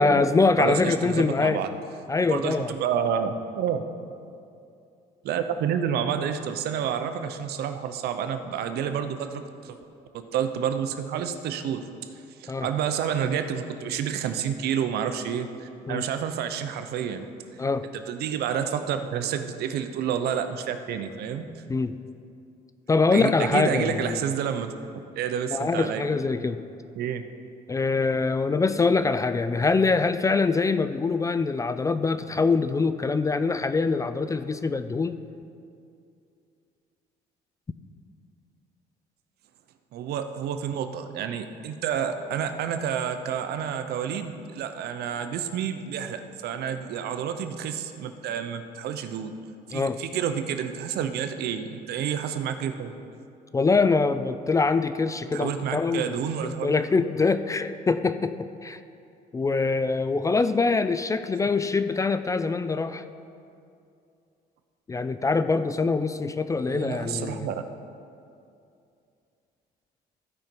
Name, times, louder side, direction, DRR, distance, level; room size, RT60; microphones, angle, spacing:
voice 1, 0.0-1.6 2.1-2.7 12.5-12.7 15.9-16.0 17.6-17.9 21.7-22.0 22.9-24.2 25.5-26.6 27.7-35.2 49.7-50.0 53.5-56.2 56.4-58.8 59.3-63.0 64.9-67.5, left 4 dB, 20° left, 11 dB, 0.3 m, -24 dB
voice 2, 0.6-1.7 2.3-3.8 5.2-9.8 10.1-11.9 12.4-17.3 17.9-21.6 23.1-24.7 25.2-26.0 26.9-27.2 39.9-49.4 49.7-53.0 55.3-56.7 66.6-67.6, right 8 dB, 70° right, 8 dB, 0.7 m, -29 dB
15.0 x 5.3 x 4.5 m, 2.5 s
cardioid pair, 110°, 17 cm